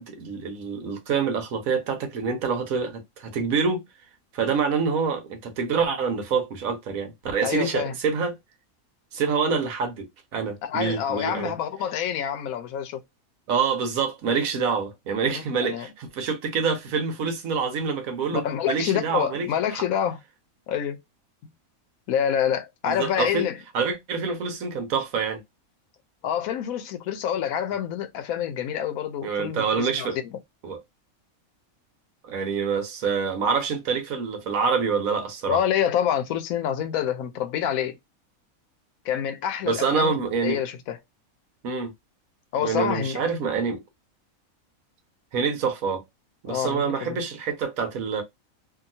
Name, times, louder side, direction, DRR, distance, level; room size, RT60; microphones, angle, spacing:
voice 1, 0.0-3.8 4.3-8.3 9.1-10.1 10.3-11.5 13.5-19.8 22.9-23.5 23.7-25.4 29.2-30.2 30.6-30.8 32.2-35.6 39.7-40.6 41.6-41.9 42.6-43.8 45.3-46.0 46.4-48.2, right 5 dB, 75° right, 1.2 m, -26 dB
voice 2, 7.4-7.9 10.6-13.0 15.2-15.9 18.3-20.2 20.7-21.0 22.1-23.6 26.2-30.1 35.4-38.0 39.0-40.1 40.4-41.0 42.5-43.2 46.5-47.2, left 9 dB, 80° left, 1.0 m, -27 dB
2.8 x 2.6 x 2.6 m
omnidirectional pair, 1.5 m